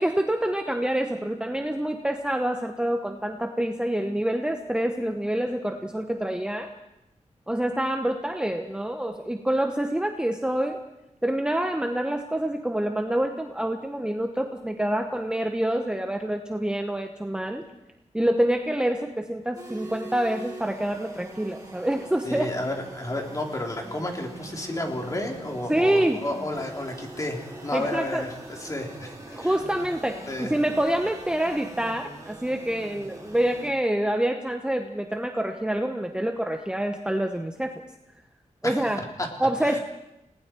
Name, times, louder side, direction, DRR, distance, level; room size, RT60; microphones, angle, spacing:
voice 1, 0.0-6.7 7.5-10.8 11.2-17.6 18.1-22.5 25.7-26.2 27.7-28.2 29.3-37.8 38.6-39.0 39.4-39.8, right 1 dB, 5° right, 5 dB, 1.1 m, -26 dB
sound 1, 19.5-33.7, right 2 dB, 30° right, 4.7 m, -43 dB
voice 2, 22.3-29.5 30.3-30.5 38.6-38.9 39.2-39.8, left 1 dB, 25° left, 2 dB, 3.4 m, -32 dB
30.0 x 19.0 x 4.5 m, 0.89 s
wide cardioid pair, 140°, 13 cm